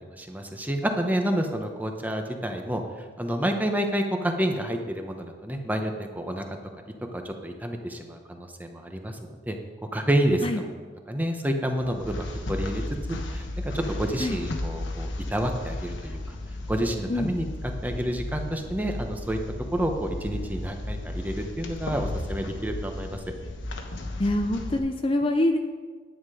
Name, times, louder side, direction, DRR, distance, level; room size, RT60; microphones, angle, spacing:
voice 1, 0.2-2.8 3.2-6.6 7.1-9.6 9.9-10.8 11.1-12.8 13.1-16.4 16.7-19.4 19.7-23.2, right 1 dB, 10° right, 4 dB, 0.9 m, -29 dB
sound 1, 11.7-24.8, left 1 dB, 75° left, 1.2 m, -34 dB
voice 2, 24.2-25.6, left 1 dB, 30° left, 5 dB, 0.5 m, -25 dB
10.0 x 9.5 x 4.9 m, 1.5 s
head